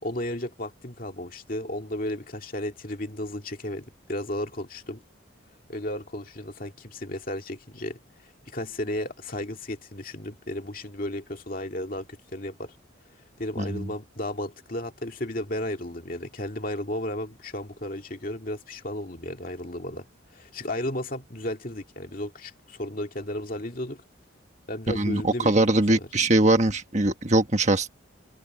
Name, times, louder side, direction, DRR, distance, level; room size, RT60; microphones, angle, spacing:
voice 1, 0.0-5.0 5.7-12.7 13.4-20.1 20.3-24.0 24.7-26.1, left 1 dB, 45° left, 2.3 m, -34 dB
voice 2, 13.6-13.9 24.9-27.9, right 2 dB, 35° right, 1.4 m, -22 dB
head